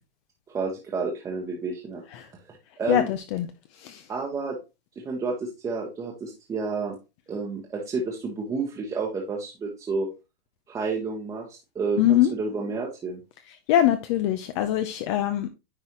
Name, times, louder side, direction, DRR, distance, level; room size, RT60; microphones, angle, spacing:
voice 1, 0.5-2.0 2.5-3.1 4.1-4.6 5.0-7.0 7.3-10.1 10.7-13.2, right 4 dB, 10° right, 1.0 m, -30 dB
voice 2, 2.9-3.5 3.8-4.0 12.0-12.3 13.7-15.5, left 12 dB, 30° left, 0.5 m, -22 dB
9.7 x 4.0 x 3.0 m
hypercardioid pair, 155°, 29 cm